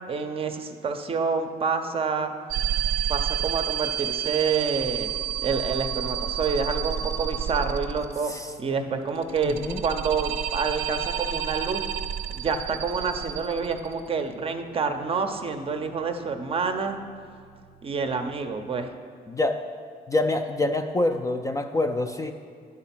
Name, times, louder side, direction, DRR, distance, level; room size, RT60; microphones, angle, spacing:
voice 1, 0.1-2.3 3.1-5.1 5.4-8.3 8.6-11.9 12.3-17.0 17.8-18.9, right 5 dB, 35° right, 7 dB, 0.6 m, -28 dB
sound 1, 2.5-8.3 9.2-14.1, right 9 dB, 80° right, 0.5 m, -30 dB
voice 2, 9.4-9.8 19.3-19.6 20.1-22.3, left 2 dB, 20° left, 6 dB, 0.4 m, -26 dB
10.5 x 3.7 x 5.8 m, 2.1 s
cardioid pair, 110°, 17 cm